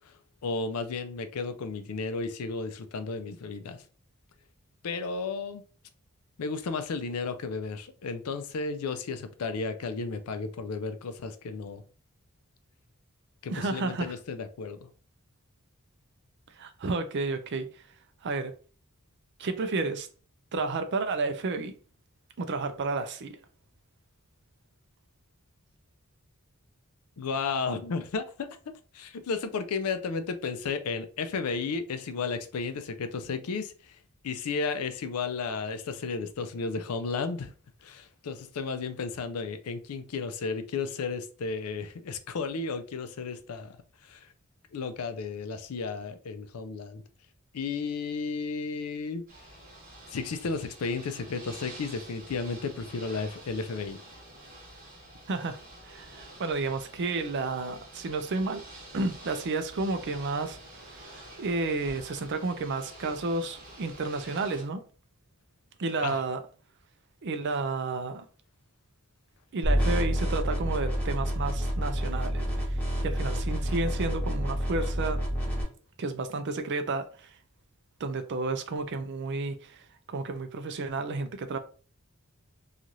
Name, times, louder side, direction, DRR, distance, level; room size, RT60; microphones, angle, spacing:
voice 1, 0.4-3.8 4.8-5.6 6.4-11.8 13.4-14.9 27.2-34.0 34.2-37.5 37.8-43.8 44.0-44.3 44.7-47.0 47.5-49.2 50.1-54.0 66.0-66.2, left 4 dB, 85° left, 0.4 m, -33 dB
voice 2, 13.5-14.1 16.6-17.7 18.2-18.5 19.4-20.1 20.5-21.8 22.4-23.4 55.3-58.6 58.9-61.1 61.4-64.8 65.8-66.4 67.2-68.3 69.5-75.2 76.0-77.3 78.0-81.6, right 3 dB, 55° right, 0.4 m, -31 dB
Ocean / Boat Water vehicle, 49.3-64.6, right 1 dB, 40° right, 1.2 m, -48 dB
sound 1, 69.6-75.6, equal, 10° left, 1.0 m, -28 dB
3.1 x 2.4 x 2.7 m
head